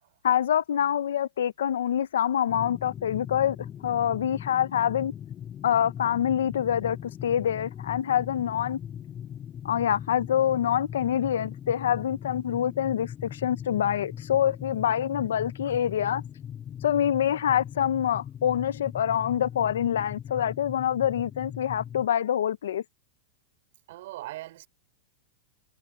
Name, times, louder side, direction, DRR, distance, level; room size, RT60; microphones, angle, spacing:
voice 1, 0.2-3.6 3.8-5.1 5.6-8.8 9.6-16.2 16.8-22.8, left 10 dB, 85° left, 0.8 m, -26 dB
sound 1, 2.5-22.1, left 9 dB, 25° left, 2.7 m, -40 dB
voice 2, 23.9-24.7, right 16 dB, 65° right, 4.2 m, -40 dB
supercardioid pair, 135°, 0 cm